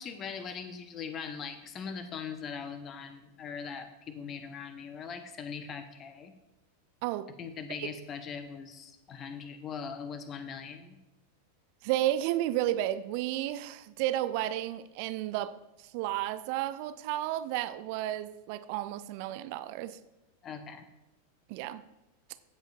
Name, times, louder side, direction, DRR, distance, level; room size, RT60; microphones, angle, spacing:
voice 1, 0.0-6.3 7.4-11.0 20.4-20.8, left 6 dB, 30° left, 9 dB, 1.0 m, -41 dB
voice 2, 11.8-15.5 15.8-20.0 21.5-21.8, right 13 dB, 45° right, 14 dB, 0.4 m, -32 dB
15.5 x 8.0 x 2.5 m, 0.97 s
figure-of-eight pair, 90°, 0 cm